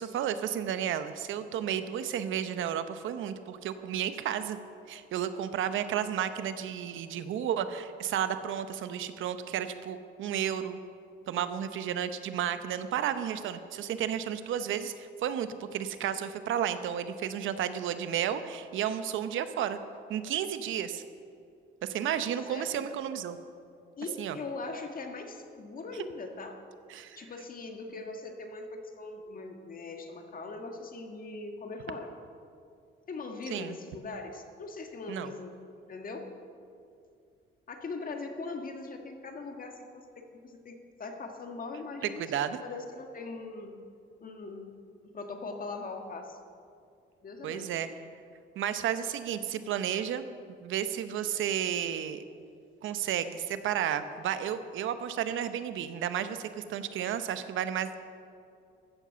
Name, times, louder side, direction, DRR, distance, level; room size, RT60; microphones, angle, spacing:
voice 1, 0.0-4.6 4.9-10.8 11.3-19.8 20.1-21.0 21.8-23.4 24.2-24.4 26.9-27.2 33.5-33.8 35.1-35.3 42.2-42.6 47.4-47.9 48.6-50.3 50.6-52.2 52.8-57.9, right 9 dB, 80° right, 11 dB, 0.8 m, -32 dB
voice 2, 22.5-22.9 24.0-26.6 27.2-32.1 33.1-35.6 35.9-36.3 37.7-39.8 40.1-43.8 44.2-44.8 45.0-46.4 47.2-47.7, left 3 dB, 45° left, 4 dB, 1.7 m, -41 dB
14.0 x 7.4 x 6.9 m, 2.4 s
cardioid pair, 90°, 20 cm